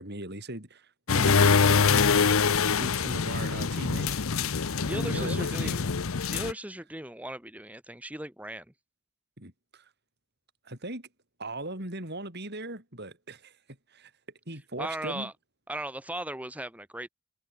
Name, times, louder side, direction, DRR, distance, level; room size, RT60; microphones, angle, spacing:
voice 1, 0.0-2.1 2.7-4.2 4.9-5.7 9.4-9.8 10.6-11.1 11.4-13.5 13.9-14.1 14.5-15.3, right 1 dB, 50° right, 6.8 m, -38 dB
sound 1, 1.1-6.5, left 5 dB, 70° left, 0.8 m, -24 dB
voice 2, 4.8-5.9 6.3-8.6 14.8-15.3 15.7-17.1, right 1 dB, 5° right, 3.0 m, -37 dB
head